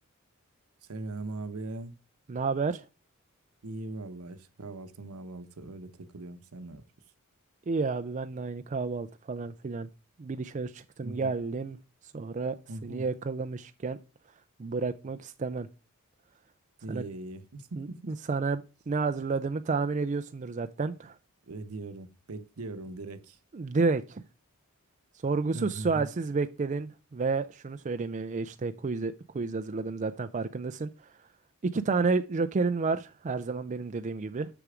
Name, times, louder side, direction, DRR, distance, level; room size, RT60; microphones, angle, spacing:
voice 1, 0.9-1.9 3.6-6.8 11.0-11.3 12.7-13.0 16.8-18.2 21.5-23.4 25.5-26.1, right 2 dB, 75° right, 0.9 m, -40 dB
voice 2, 2.3-2.8 7.7-9.9 10.2-11.8 12.1-12.6 12.8-14.0 14.6-15.7 16.9-17.0 17.8-21.2 23.5-24.2 25.2-30.9 31.7-34.5, right 4 dB, 35° right, 0.4 m, -30 dB
6.7 x 6.0 x 5.0 m
head